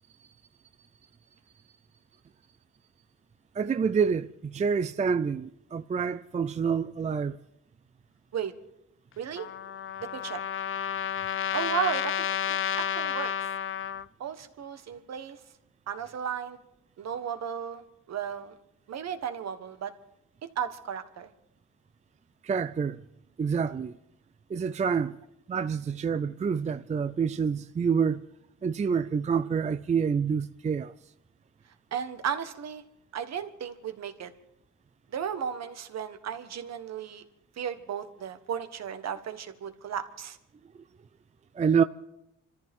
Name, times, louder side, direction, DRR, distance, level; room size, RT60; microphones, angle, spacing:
voice 1, 3.5-7.4 22.4-23.0 23.4-24.0 24.5-25.2 25.5-28.2 28.6-30.9 41.5-41.8, right 6 dB, 25° right, 0.5 m, -27 dB
voice 2, 9.2-9.5 10.1-10.4 11.5-13.3 14.2-15.4 15.9-16.6 17.0-18.5 18.9-19.9 20.5-21.3 31.9-32.8 33.1-34.3 35.1-37.2 37.6-40.4, right 8 dB, 60° right, 1.5 m, -34 dB
Trumpet, 9.4-14.1, left 9 dB, 45° left, 0.5 m, -31 dB
26.0 x 14.0 x 3.7 m
cardioid pair, 90°, 30 cm